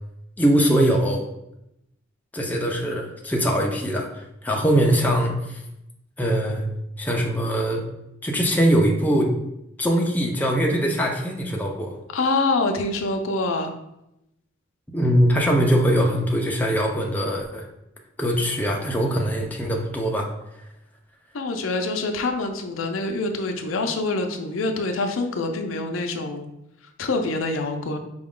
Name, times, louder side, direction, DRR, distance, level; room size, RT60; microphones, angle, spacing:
voice 1, 0.4-1.2 2.3-4.1 4.4-5.6 6.2-6.6 7.0-7.8 8.2-9.3 9.8-11.9 14.9-17.6 18.2-20.3, equal, 10° left, -1 dB, 0.5 m, -22 dB
voice 2, 12.1-13.7 21.3-26.5 27.0-28.0, left 3 dB, 85° left, 5 dB, 0.5 m, -25 dB
4.9 x 2.3 x 3.6 m, 0.85 s
head